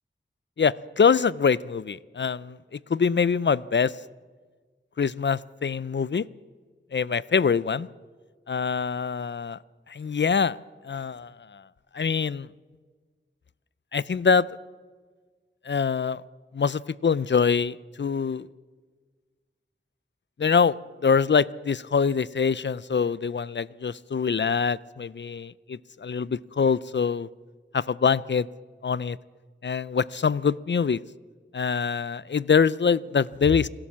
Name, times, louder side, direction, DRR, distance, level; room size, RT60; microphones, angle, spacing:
voice 1, 0.6-4.0 5.0-6.3 6.9-7.9 8.5-9.6 9.9-10.6 10.8-11.6 11.9-12.5 13.9-14.5 15.7-16.2 16.5-18.5 20.4-20.7 21.0-27.3 27.7-28.5 28.8-29.2 29.6-31.0 31.5-33.7, left 6 dB, 60° left, 20 dB, 0.5 m, -24 dB
27.0 x 13.0 x 7.4 m, 1.4 s
wide cardioid pair, 55°, 20 cm